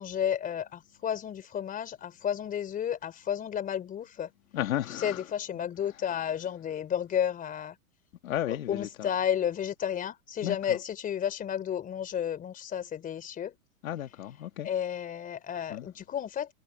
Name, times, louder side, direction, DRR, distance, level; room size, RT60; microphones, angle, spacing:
voice 1, 0.0-4.3 4.9-7.8 8.5-13.6 14.6-16.5, left 9 dB, 20° left, 3.8 m, -32 dB
voice 2, 4.5-5.2 8.2-8.9 10.4-10.8 13.8-14.7 15.7-15.9, left 12 dB, 65° left, 2.9 m, -33 dB
hypercardioid pair, 140°, 43 cm